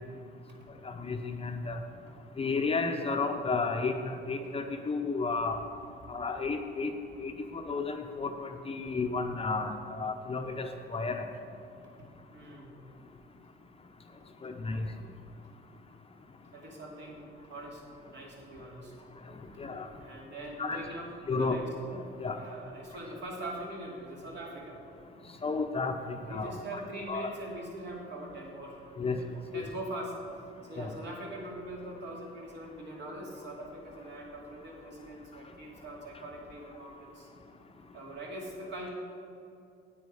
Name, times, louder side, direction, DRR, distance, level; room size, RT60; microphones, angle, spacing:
voice 1, 0.8-1.8 2.4-5.6 6.1-6.9 7.2-11.3 14.4-14.9 19.6-19.9 20.6-20.8 21.3-21.6 21.9-22.4 25.4-26.8 27.1-27.3 29.0-29.2 29.5-29.6 30.8-30.9, left 4 dB, 30° left, 5 dB, 0.7 m, -32 dB
voice 2, 12.3-12.7 16.5-17.8 18.1-18.9 20.0-21.6 22.3-24.8 26.3-30.2 30.7-37.3 37.9-38.9, right 1 dB, 60° right, -2 dB, 2.5 m, -42 dB
9.5 x 8.5 x 4.9 m, 2.5 s
cardioid pair, 105°, 21 cm